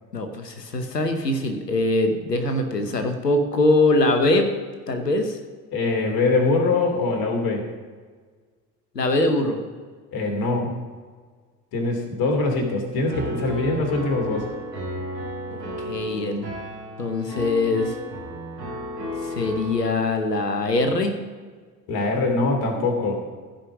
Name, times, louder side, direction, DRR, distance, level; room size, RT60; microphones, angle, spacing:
voice 1, 0.1-4.5 4.9-5.4 8.9-9.6 15.5-16.5 17.0-18.0 19.2-21.1, left 2 dB, 85° left, 7 dB, 1.0 m, -22 dB
voice 2, 5.7-7.7 10.1-10.7 11.7-14.5 21.9-23.2, left 3 dB, 50° left, 2 dB, 2.7 m, -23 dB
Piano, 13.1-19.9, equal, 90° right, 1.8 m, -33 dB
15.5 x 5.2 x 6.1 m, 1.5 s
figure-of-eight pair, 55°, 47 cm